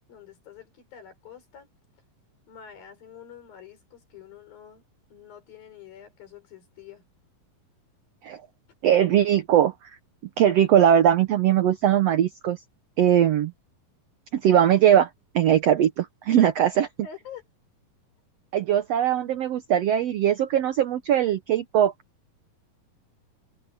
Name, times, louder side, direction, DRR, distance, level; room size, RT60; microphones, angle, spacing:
voice 1, 0.1-1.7 2.5-4.8 5.1-7.1 17.0-17.4, left 8 dB, 80° left, 6.1 m, -46 dB
voice 2, 8.8-9.7 10.4-12.6 13.0-13.5 14.3-15.1 15.3-16.9 18.5-21.9, right 10 dB, 90° right, 1.4 m, -20 dB
omnidirectional pair, 4.1 m